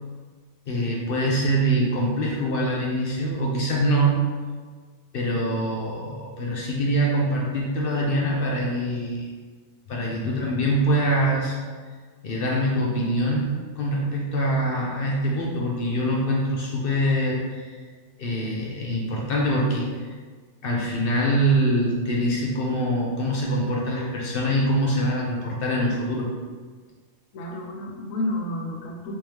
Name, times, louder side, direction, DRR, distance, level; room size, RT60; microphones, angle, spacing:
voice 1, 0.7-4.2 5.1-9.2 9.9-11.6 12.2-17.8 18.2-19.9 20.6-26.3, right 1 dB, 60° left, -3 dB, 0.6 m, -24 dB
voice 2, 27.3-29.2, left 1 dB, 85° left, 1 dB, 1.0 m, -30 dB
3.4 x 3.2 x 2.9 m, 1.5 s
omnidirectional pair, 1.3 m